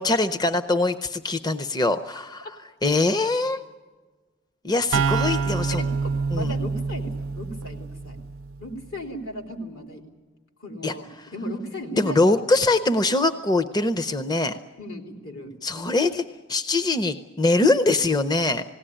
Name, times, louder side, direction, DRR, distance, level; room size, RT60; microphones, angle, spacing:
voice 1, 0.0-2.5 2.8-3.6 4.6-5.8 6.3-6.6 10.8-11.3 12.0-14.6 15.6-16.2 16.5-18.6, left 2 dB, 20° left, 10 dB, 0.6 m, -23 dB
sound 1, 4.9-8.6, right 5 dB, 85° right, 0.6 m, -26 dB
voice 2, 6.4-8.2 8.6-10.0 10.6-12.4 14.8-15.5, equal, 80° left, 1 dB, 3.8 m, -36 dB
19.5 x 17.5 x 10.0 m, 1.4 s
head